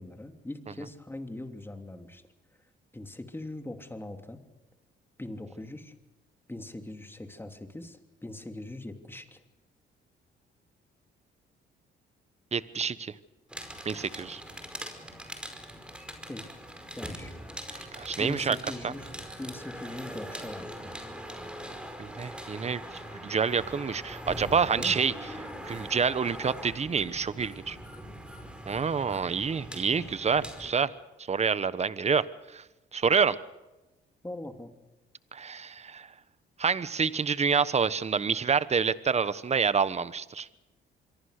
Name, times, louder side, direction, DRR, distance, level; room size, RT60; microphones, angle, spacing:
voice 1, 0.0-2.2 2.9-4.4 5.2-5.9 6.5-9.4 16.3-16.5 17.0-17.3 18.2-19.1 19.4-20.7 24.8-24.9 34.2-34.7, left 1 dB, 10° left, 6 dB, 3.0 m, -41 dB
voice 2, 12.5-13.1 13.8-14.4 17.7-18.6 18.8-18.9 22.0-25.1 25.6-27.8 28.7-30.9 31.2-32.6 32.9-33.4 35.3-36.1 36.6-40.5, right 6 dB, 35° right, 16 dB, 1.1 m, -28 dB
sound 1, 13.5-30.7, equal, 5° right, 5.0 m, -42 dB
26.0 x 23.5 x 6.7 m, 1.1 s
cardioid pair, 90°, 20 cm